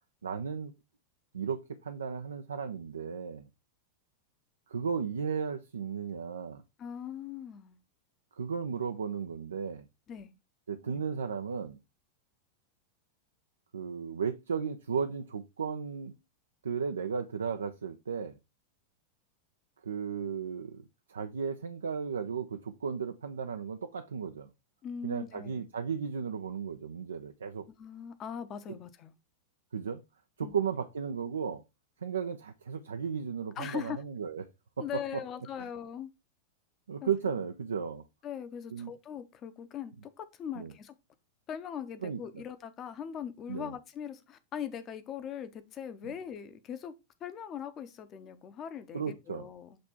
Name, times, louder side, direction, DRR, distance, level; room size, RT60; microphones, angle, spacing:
voice 1, 0.2-0.7 1.3-3.5 4.7-6.6 8.4-9.8 10.7-11.8 13.7-16.1 16.6-18.4 19.8-24.5 25.0-27.7 29.7-30.0 30.4-31.6 32.0-34.4 34.8-34.9 36.9-38.0 38.7-38.9 40.6-40.7 42.0-42.4 43.5-43.7 48.9-49.5, right 6 dB, 70° right, 0.5 m, -35 dB
voice 2, 6.8-7.8 10.1-10.3 10.9-11.1 24.8-25.6 27.8-29.1 30.4-30.6 33.6-34.0 34.8-36.1 37.0-37.1 38.2-40.9 41.5-46.9 47.2-49.8, left 8 dB, 30° left, 0.9 m, -40 dB
7.7 x 3.4 x 4.4 m
figure-of-eight pair, 90°, 0 cm